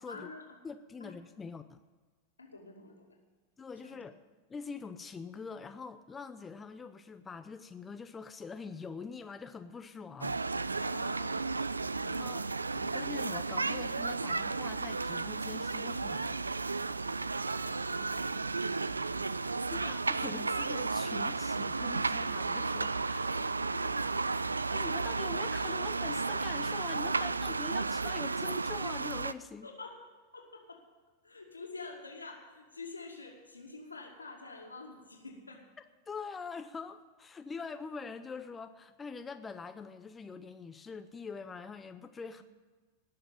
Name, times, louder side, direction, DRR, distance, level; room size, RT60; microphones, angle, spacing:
voice 1, 0.1-0.6 1.0-1.1 2.4-3.2 3.8-4.0 10.8-11.4 17.6-19.8 23.1-23.4 23.7-24.3 27.2-27.3 29.6-30.0 30.3-30.8 31.2-35.7 42.4-42.5, left 3 dB, 80° left, 1 dB, 2.4 m, -48 dB
voice 2, 0.6-1.8 3.6-4.1 4.5-10.4 12.0-16.5 19.7-23.4 24.5-29.7 36.1-42.4, left 5 dB, 15° left, 9 dB, 0.6 m, -44 dB
sound 1, 10.2-29.3, right 3 dB, 80° right, 0.4 m, -33 dB
19.0 x 6.7 x 8.7 m, 1.4 s
figure-of-eight pair, 90°, 0 cm